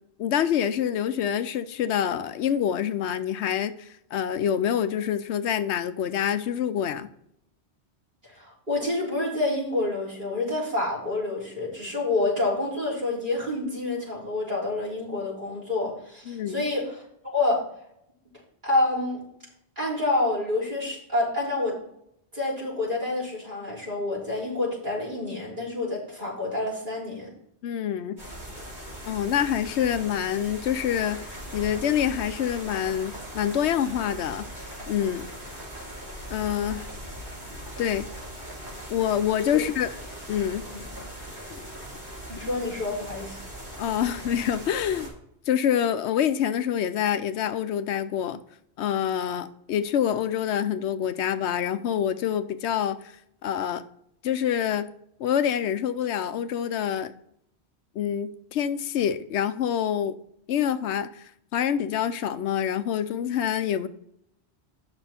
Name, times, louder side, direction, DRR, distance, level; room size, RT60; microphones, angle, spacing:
voice 1, 0.2-7.1 16.3-16.6 27.6-28.2 29.1-35.3 36.3-36.9 37.8-38.1 38.9-39.9 40.3-40.6 41.5-41.7 43.8-45.1 45.5-48.4 48.8-53.0 53.4-53.8 54.2-54.9 55.2-57.1 58.0-60.2 60.5-61.2 61.5-63.9, left 9 dB, 80° left, 11 dB, 0.9 m, -26 dB
voice 2, 8.2-17.6 18.6-19.2 19.8-21.7 22.3-27.3 39.5-39.6 40.7-40.8 42.3-43.4, left 2 dB, 45° right, -7 dB, 3.8 m, -28 dB
sound 1, 28.2-45.1, equal, 75° right, 4.1 m, -40 dB
8.8 x 6.3 x 4.3 m, 0.72 s
omnidirectional pair, 1.1 m